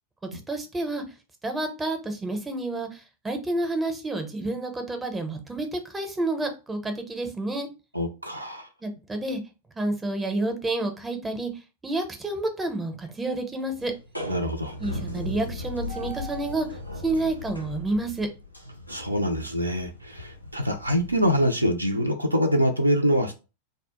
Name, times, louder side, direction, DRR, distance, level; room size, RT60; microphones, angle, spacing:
voice 1, 0.3-1.0 1.4-7.7 8.8-9.4 9.8-11.5 11.8-13.9 14.8-16.7 17.0-18.3, right 2 dB, 10° right, 0.6 m, -29 dB
voice 2, 7.9-8.7 14.3-14.7 18.9-23.3, equal, 85° right, 0.3 m, -25 dB
sound 1, 13.8-21.4, left 2 dB, 90° left, 0.5 m, -38 dB
2.1 x 2.0 x 2.9 m
figure-of-eight pair, 90°, 0 cm